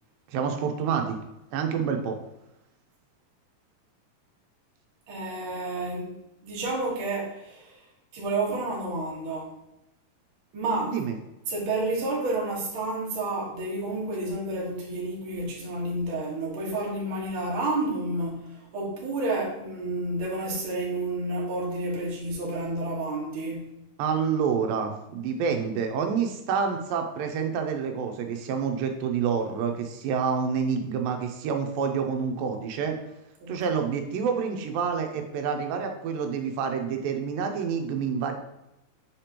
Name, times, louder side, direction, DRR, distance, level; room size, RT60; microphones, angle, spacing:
voice 1, 0.3-1.2 1.5-2.2 10.9-11.2 24.0-33.0 33.5-38.4, right 6 dB, 90° right, 4 dB, 2.4 m, -28 dB
voice 2, 5.1-6.1 6.4-7.8 8.1-9.5 10.5-11.0 11.5-23.7 33.4-33.6, right 2 dB, 45° right, -4 dB, 1.9 m, -30 dB
6.5 x 5.1 x 2.9 m, 0.89 s
omnidirectional pair, 3.9 m